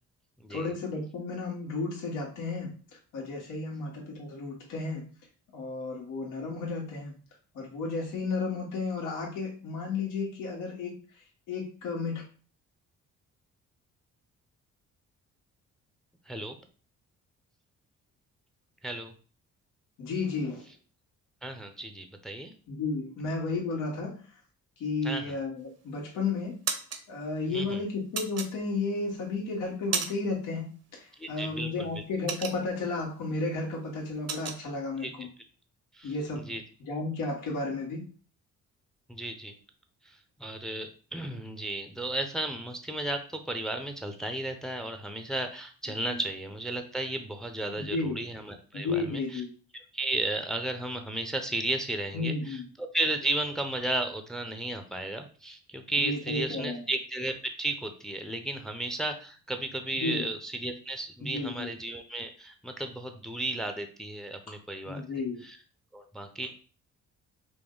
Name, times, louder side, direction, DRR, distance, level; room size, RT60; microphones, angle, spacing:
voice 1, 0.5-2.7 3.1-5.0 5.5-7.1 7.5-10.9 11.5-12.2 20.0-20.6 22.7-24.2 24.8-26.6 27.1-35.3 36.0-36.5 36.8-38.0 46.0-46.2 47.6-48.2 48.7-49.5 52.1-52.7 56.0-56.8 60.0-60.3 61.2-61.7 64.8-65.4, left 3 dB, 90° left, -1 dB, 1.4 m, -33 dB
voice 2, 21.4-22.5 25.0-25.2 27.5-27.8 31.2-32.0 35.0-35.3 36.0-36.1 36.5-36.6 39.1-39.5 40.1-49.4 49.9-57.3 57.6-65.0 65.5-65.6 65.9-66.5, right 2 dB, ahead, 7 dB, 0.6 m, -34 dB
sound 1, 25.6-26.0 26.4-27.0 28.1-29.0 29.5-30.4 30.7-30.9 31.3-33.0 33.4-33.6 33.8-34.6, right 6 dB, 55° right, 0.8 m, -33 dB
5.1 x 2.1 x 3.7 m, 0.39 s
cardioid pair, 90°, 30 cm